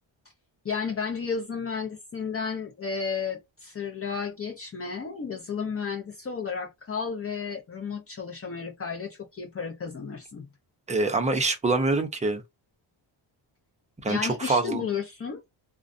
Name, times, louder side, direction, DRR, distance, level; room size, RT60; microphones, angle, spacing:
voice 1, 0.6-10.5 14.1-15.4, left 5 dB, 30° left, 0.6 m, -33 dB
voice 2, 10.9-12.4 14.0-14.9, right 3 dB, 15° right, 0.5 m, -25 dB
2.4 x 2.1 x 2.4 m
wide cardioid pair, 145°, 47 cm